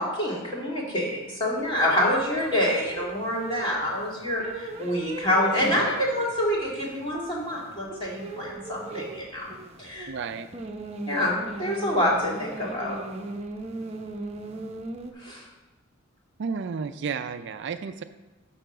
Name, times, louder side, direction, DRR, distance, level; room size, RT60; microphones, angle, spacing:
voice 1, 0.0-9.5 9.8-10.1 11.1-13.0 15.2-15.4, left 1 dB, 25° left, -4 dB, 2.1 m, -27 dB
sound 1, 1.6-15.1, right 2 dB, 30° right, 0.7 m, -38 dB
voice 2, 10.1-10.5 16.4-18.0, right 5 dB, 55° right, 10 dB, 0.4 m, -32 dB
6.8 x 5.6 x 6.0 m, 1.2 s
head